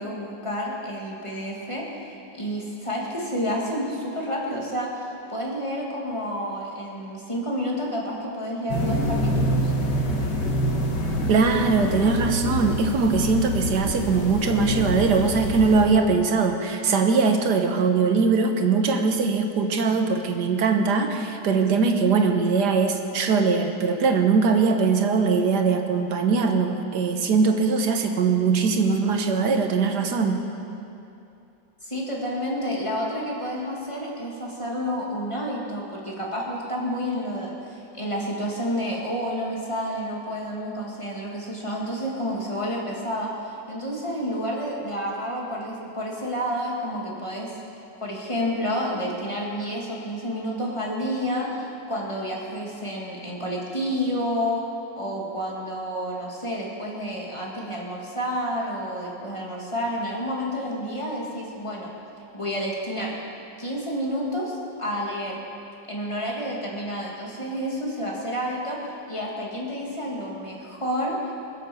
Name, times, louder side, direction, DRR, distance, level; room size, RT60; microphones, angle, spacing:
voice 1, 0.0-9.7 31.8-47.5 48.0-54.6 55.0-61.9 62.3-63.1 63.6-65.4 65.9-68.8 69.1-71.3, equal, 15° left, -3 dB, 2.3 m, -30 dB
sound 1, 8.7-15.9, equal, 70° left, 2.2 m, -26 dB
voice 2, 11.3-30.4, right 4 dB, 70° right, 5 dB, 1.6 m, -21 dB
21.5 x 8.1 x 7.0 m, 2.7 s
omnidirectional pair, 1.9 m